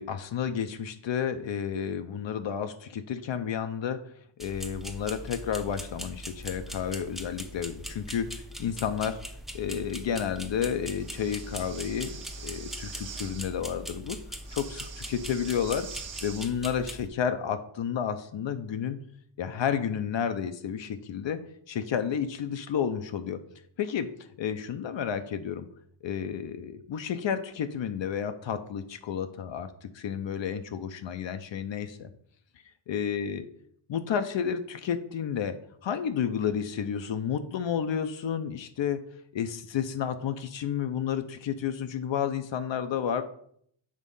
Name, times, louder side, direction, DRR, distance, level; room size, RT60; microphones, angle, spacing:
voice 1, 0.0-4.0 4.4-9.2 9.5-14.2 14.5-15.9 16.2-19.0 19.4-21.4 21.7-23.4 23.8-24.1 24.4-25.7 26.0-32.1 32.9-33.4 33.9-35.5 35.8-39.0 39.3-43.2, left 8 dB, 70° left, 8 dB, 0.6 m, -31 dB
sound 1, 4.4-17.1, equal, ahead, 0.6 m, -41 dB
Breathing, 11.0-13.4 14.4-16.5, right 7 dB, 70° right, 1.0 m, -45 dB
7.5 x 3.6 x 5.3 m, 0.66 s
wide cardioid pair, 120°, 47 cm